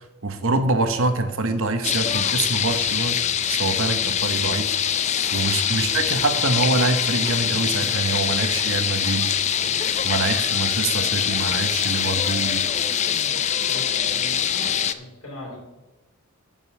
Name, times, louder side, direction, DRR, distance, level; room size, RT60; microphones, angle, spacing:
voice 1, 0.2-3.2 3.5-4.7 5.3-9.3 10.0-12.6, right 3 dB, 65° right, 8 dB, 1.0 m, -25 dB
sound 1, 1.8-14.9, left 9 dB, 30° left, 0.4 m, -23 dB
sound 2, 6.1-13.4, left 1 dB, 10° left, 1.9 m, -44 dB
voice 2, 13.3-15.6, left 1 dB, 75° left, -5 dB, 4.1 m, -39 dB
9.4 x 5.3 x 6.9 m, 1.1 s
head